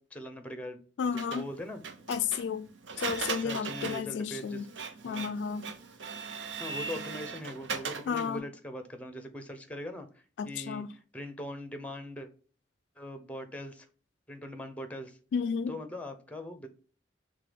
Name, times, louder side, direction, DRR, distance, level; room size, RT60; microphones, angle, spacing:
voice 1, 0.0-1.8 3.0-4.7 5.0-5.3 6.6-12.3 13.0-13.9 14.3-15.2 15.7-16.7, left 1 dB, 10° left, 0.7 m, -41 dB
voice 2, 1.0-1.5 2.1-2.7 3.0-4.6 5.0-5.7 8.1-8.4 10.4-10.9 15.3-15.8, left 6 dB, 75° left, 0.3 m, -32 dB
Printer, 1.2-8.4, right 5 dB, 80° right, 0.6 m, -39 dB
6.5 x 2.3 x 3.4 m
head